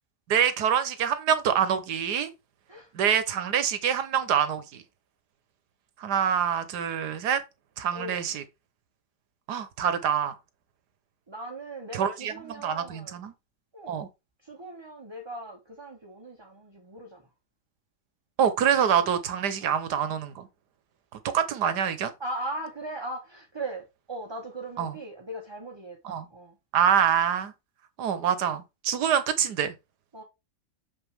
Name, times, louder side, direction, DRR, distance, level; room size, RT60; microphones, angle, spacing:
voice 1, 0.3-2.3 2.9-4.8 6.0-7.4 7.8-8.4 9.5-10.3 11.9-13.3 13.9-14.1 18.4-20.5 21.3-22.1 24.8-24.9 26.0-26.3 26.7-27.5 28.0-29.7, right 8 dB, 75° right, 1.5 m, -25 dB
voice 2, 7.9-8.3 11.3-13.2 13.7-14.1 14.4-17.3 19.6-19.8 22.2-26.6 30.1-30.2, right 2 dB, 20° right, 0.8 m, -39 dB
6.5 x 5.7 x 3.4 m
omnidirectional pair, 1.8 m